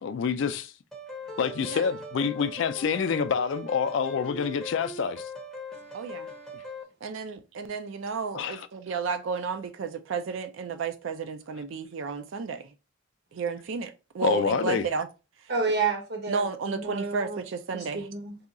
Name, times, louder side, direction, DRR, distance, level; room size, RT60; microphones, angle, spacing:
voice 1, 0.0-0.7 1.4-5.2 8.3-8.7 14.2-14.8, left 6 dB, 60° left, 0.3 m, -27 dB
sound 1, 0.9-6.8, left 2 dB, ahead, 0.6 m, -40 dB
voice 2, 5.9-6.3 7.0-12.7 13.3-15.1 16.3-18.0, right 5 dB, 65° right, 0.4 m, -32 dB
voice 3, 15.5-17.4 17.7-18.4, right 4 dB, 50° right, 0.9 m, -30 dB
2.7 x 2.3 x 3.7 m
head